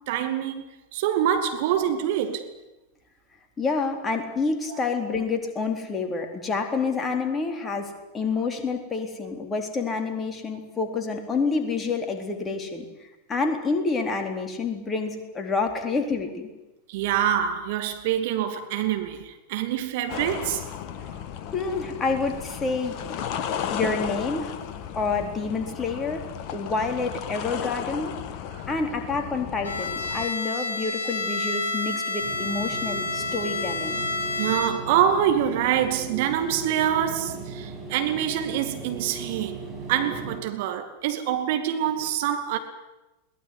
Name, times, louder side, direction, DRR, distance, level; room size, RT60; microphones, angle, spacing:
voice 1, 0.1-2.5 4.7-4.8 16.9-20.7 28.5-28.7 34.4-39.6 39.9-42.6, right 10 dB, 50° right, 2.4 m, -25 dB
voice 2, 3.6-16.5 21.5-23.0 23.7-24.6 25.0-26.3 26.5-28.1 28.7-34.0, left 4 dB, 20° left, 4.0 m, -28 dB
sound 1, 20.1-30.3, left 9 dB, 40° left, 1.8 m, -34 dB
Bowed string instrument, 29.6-35.1, left 3 dB, 65° left, 2.6 m, -30 dB
sound 2, 32.2-40.4, right 4 dB, 20° right, 7.9 m, -38 dB
22.0 x 19.5 x 9.7 m
figure-of-eight pair, 90°, 0 cm